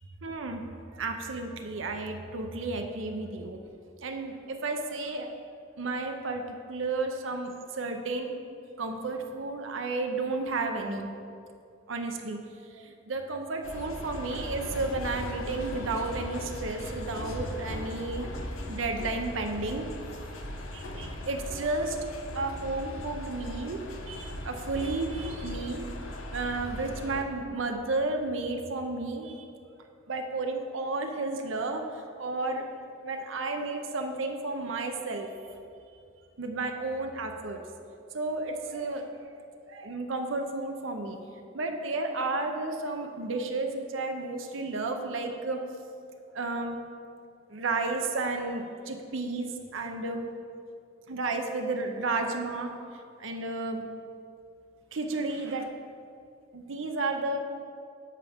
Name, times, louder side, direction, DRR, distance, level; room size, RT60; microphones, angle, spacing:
voice 1, 0.2-0.7 0.9-3.6 4.0-5.3 5.8-6.4 6.7-8.4 8.8-11.1 11.9-12.4 12.7-18.3 18.7-19.8 20.7-22.0 22.3-23.8 24.1-25.9 26.3-29.5 30.1-32.6 33.0-35.3 36.4-37.6 38.1-39.3 39.7-41.2 41.5-45.6 46.3-46.8 47.5-50.3 51.1-52.7 53.2-53.9 54.9-55.7 56.5-57.4, right 3 dB, 70° right, 4 dB, 0.7 m, -32 dB
sound 1, 13.6-27.2, left 1 dB, 85° left, 0.9 m, -38 dB
10.5 x 3.5 x 7.0 m, 2.4 s
head